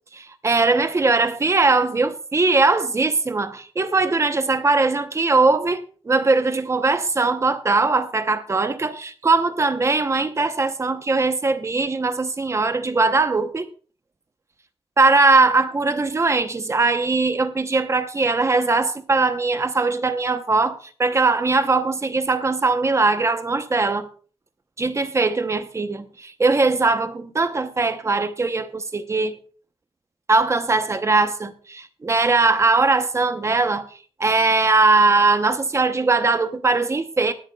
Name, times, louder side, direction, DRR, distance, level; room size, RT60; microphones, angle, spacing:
voice 1, 0.1-13.7 15.0-24.1 24.8-29.4 30.3-33.9 34.2-37.3, right 3 dB, 25° right, 0.8 m, -20 dB
19.5 x 10.5 x 2.3 m
wide cardioid pair, 165°, 10 cm